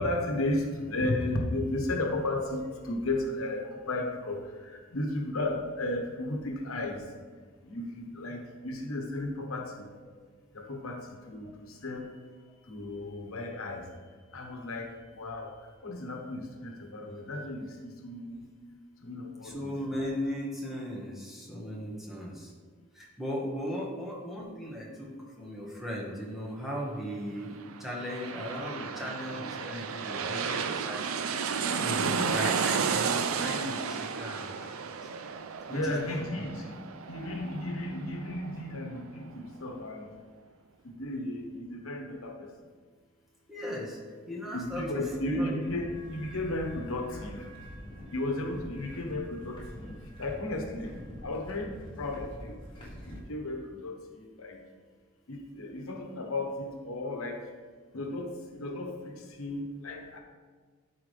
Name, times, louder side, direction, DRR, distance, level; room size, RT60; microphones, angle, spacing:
voice 1, 0.0-3.6 3.9-4.4 4.9-7.0 7.7-9.6 10.7-11.0 11.3-11.5 11.8-12.1 12.7-13.8 14.3-14.9 15.2-15.5 15.8-17.6 18.0-18.4 19.0-19.7 32.0-32.4 35.7-36.5 37.1-39.0 39.3-40.0 41.0-42.3 44.5-47.4 48.1-49.6 50.2-50.9 51.2-51.7 52.0-52.5 53.1-53.9 54.4-54.6 55.3-57.4 57.9-58.3 58.6-58.9 59.4-60.2, left 2 dB, 85° left, 2 dB, 1.1 m, -33 dB
voice 2, 19.4-22.5 22.9-31.0 31.4-34.9 35.7-36.6 43.5-44.0 44.3-45.6, equal, ahead, -5 dB, 1.5 m, -37 dB
sound 1, 27.6-39.0 39.3-39.4, right 6 dB, 80° right, 0.5 m, -33 dB
sound 2, 45.6-53.2, equal, 25° left, 1.7 m, -45 dB
12.0 x 4.7 x 3.4 m, 1.5 s
head